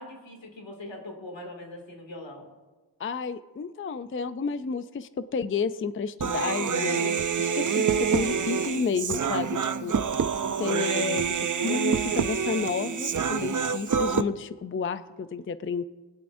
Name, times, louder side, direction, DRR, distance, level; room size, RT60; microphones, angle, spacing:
voice 1, 0.0-2.5 9.7-10.8, left 1 dB, 85° left, 1 dB, 2.5 m, -43 dB
voice 2, 3.0-9.9 10.6-15.8, left 5 dB, 30° left, 13 dB, 0.4 m, -31 dB
Human voice, 6.2-14.2, right 6 dB, 45° right, 0.5 m, -27 dB
20.5 x 12.0 x 2.6 m, 1.2 s
wide cardioid pair, 75°, 44 cm